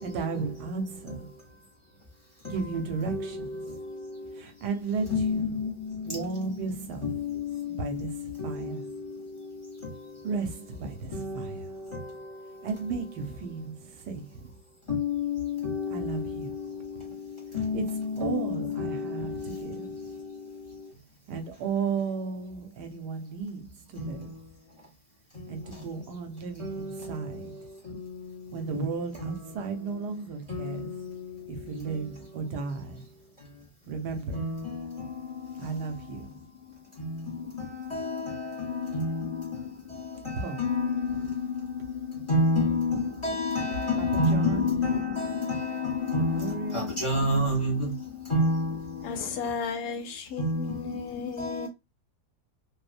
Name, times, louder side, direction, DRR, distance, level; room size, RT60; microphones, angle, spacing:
voice 1, 0.0-1.3 2.4-3.7 4.4-5.6 6.1-7.1 7.7-8.9 10.2-11.7 12.6-14.5 15.9-16.5 17.7-20.0 21.3-24.3 25.5-27.7 28.5-30.9 31.5-33.1 33.9-34.5 35.6-36.4 40.4-40.6 44.0-44.6 46.1-47.0, right 4 dB, 85° right, 1.3 m, -34 dB
voice 2, 5.1-5.7 11.2-11.4 14.9-15.4 15.6-16.0 17.5-18.5 18.8-19.0 24.0-24.1 26.6-26.8 34.3-34.6 37.0-37.1 37.9-38.1 38.9-39.3 40.6-41.3 42.3-47.9 48.3-48.7 50.4-50.7 51.4-51.5, left 2 dB, 30° left, 0.6 m, -27 dB
voice 3, 49.0-51.7, left 5 dB, 80° left, 1.2 m, -34 dB
2.9 x 2.1 x 2.4 m
omnidirectional pair, 1.7 m